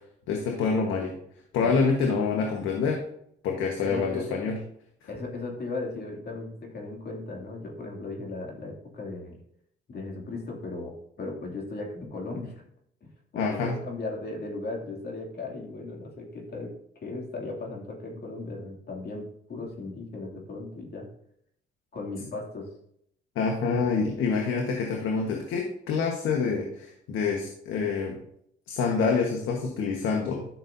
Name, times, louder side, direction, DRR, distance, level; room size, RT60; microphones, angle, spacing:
voice 1, 0.3-1.1 1.5-3.0 3.4-4.6 5.0-5.1 13.3-13.8 23.3-28.1 28.7-30.5, left 5 dB, 90° left, 1 dB, 1.4 m, -27 dB
voice 2, 3.8-4.2 5.1-9.4 9.9-12.6 13.3-16.7 17.0-21.1 21.9-22.7, left 2 dB, 55° left, 0 dB, 2.7 m, -37 dB
12.5 x 6.2 x 2.7 m, 0.70 s
cardioid pair, 90°, 20 cm